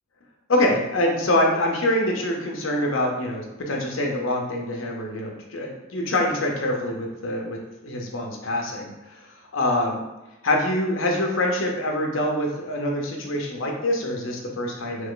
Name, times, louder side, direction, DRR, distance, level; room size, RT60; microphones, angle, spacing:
voice 1, 0.5-7.6 7.8-9.3 9.5-10.0 10.4-15.1, left 1 dB, 90° left, 0 dB, 0.8 m, -25 dB
3.4 x 3.0 x 3.8 m, 0.97 s
head